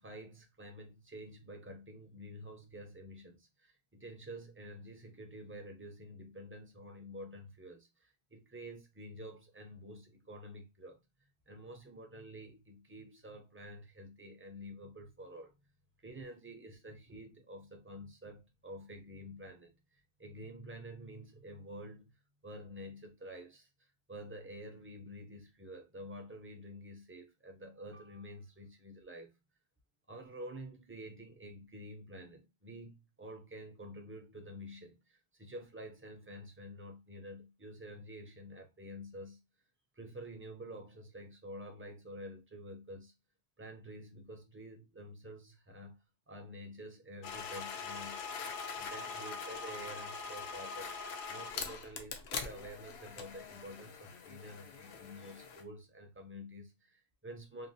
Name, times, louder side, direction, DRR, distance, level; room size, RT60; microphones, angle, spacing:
voice 1, 0.0-11.0 11.5-15.5 16.0-22.1 22.4-23.7 24.1-29.3 30.1-39.4 40.0-43.1 43.6-46.0 46.3-48.2 48.8-50.9 51.3-57.7, equal, 20° right, 0.4 m, -49 dB
sound 1, 47.2-55.6, left 5 dB, 80° left, 0.9 m, -43 dB
3.2 x 2.2 x 2.6 m
omnidirectional pair, 1.1 m